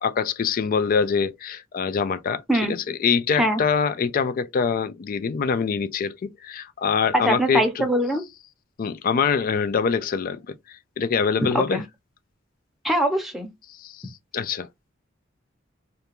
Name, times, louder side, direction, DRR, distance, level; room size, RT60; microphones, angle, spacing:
voice 1, 0.0-2.4 2.7-7.9 8.8-11.8 13.7-14.7, left 6 dB, 45° left, 0.3 m, -24 dB
voice 2, 7.1-8.2 11.5-11.8 12.8-13.5, right 1 dB, ahead, 0.6 m, -22 dB
2.5 x 2.2 x 2.8 m
head